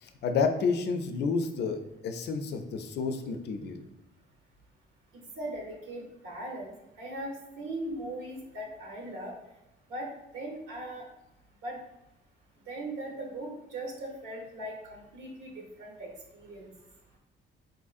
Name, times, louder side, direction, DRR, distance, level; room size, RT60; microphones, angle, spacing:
voice 1, 0.0-3.8, left 5 dB, 60° left, 7 dB, 0.4 m, -30 dB
voice 2, 5.1-6.7 7.0-9.3 9.9-10.1 10.3-11.0 11.6-11.8 12.7-16.7, right 1 dB, 80° right, -2 dB, 0.8 m, -39 dB
4.2 x 2.6 x 2.4 m, 0.91 s
cardioid pair, 90°, 20 cm